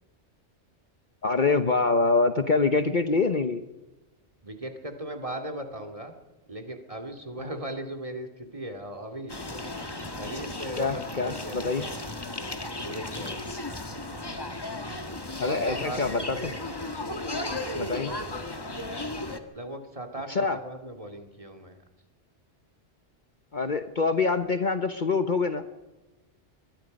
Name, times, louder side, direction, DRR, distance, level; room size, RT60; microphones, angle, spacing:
voice 1, 1.2-3.6 10.8-11.9 15.4-16.5 17.7-18.1 20.3-20.6 23.5-25.6, left 4 dB, 45° left, 9 dB, 1.0 m, -25 dB
voice 2, 4.4-6.1 6.5-9.3 10.2-11.9 12.8-13.6 15.4-16.5 17.4-18.4 19.5-21.8, right 1 dB, 30° right, 5 dB, 2.3 m, -38 dB
sound 1, 9.3-19.4, left 2 dB, 20° left, 1.6 m, -35 dB
25.5 x 21.0 x 5.3 m, 1.1 s
omnidirectional pair, 1.2 m